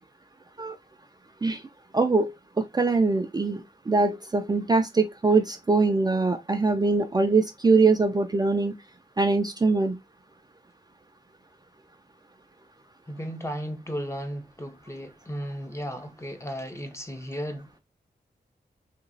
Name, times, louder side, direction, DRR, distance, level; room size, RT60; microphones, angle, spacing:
voice 1, 1.9-8.7 9.2-10.0, right 3 dB, 25° right, 0.4 m, -23 dB
voice 2, 13.1-17.8, equal, 15° left, 0.6 m, -35 dB
2.9 x 2.9 x 2.6 m
wide cardioid pair, 90°, 17 cm